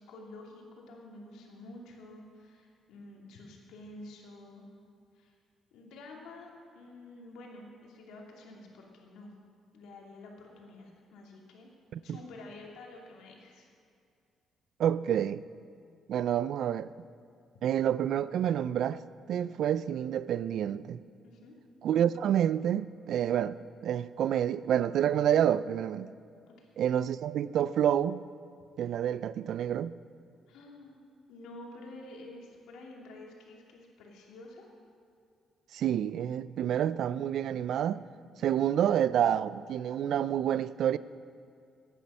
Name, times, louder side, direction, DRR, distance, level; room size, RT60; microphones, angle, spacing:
voice 1, 0.0-4.7 5.1-5.4 5.7-6.5 6.7-9.3 9.7-11.7 12.0-13.7 21.2-21.6 26.5-26.7 30.5-31.0 31.3-34.7 38.3-38.6, left 2 dB, 85° left, 2.5 m, -49 dB
voice 2, 14.8-15.4 16.1-16.9 17.6-19.0 19.3-21.0 21.8-26.1 26.8-28.2 28.8-29.9 35.7-38.0 38.4-41.0, right 10 dB, 70° right, 0.4 m, -28 dB
16.0 x 10.0 x 5.5 m
cardioid pair, 90°, 0 cm